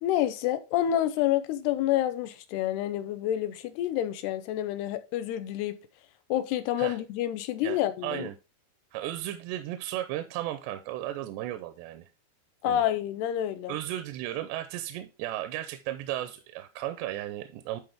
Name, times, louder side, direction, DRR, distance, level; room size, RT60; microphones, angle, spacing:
voice 1, 0.0-5.8 6.3-8.3 12.6-13.8, left 12 dB, 80° left, 2.6 m, -28 dB
voice 2, 7.6-8.4 8.9-12.1 12.7-12.8 13.7-17.8, right 13 dB, 90° right, 2.8 m, -35 dB
11.5 x 4.2 x 3.5 m
omnidirectional pair, 4.9 m